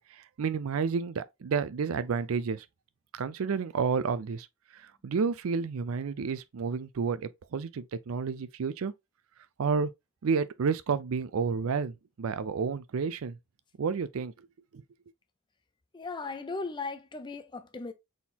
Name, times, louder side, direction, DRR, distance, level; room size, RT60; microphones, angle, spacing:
voice 1, 0.0-2.7 3.1-4.5 4.7-8.9 9.6-9.9 10.2-13.4 13.8-14.3 14.7-14.8, right 5 dB, 75° right, 0.4 m, -30 dB
voice 2, 15.9-17.9, left 3 dB, 20° left, 0.5 m, -37 dB
4.2 x 3.7 x 2.8 m
head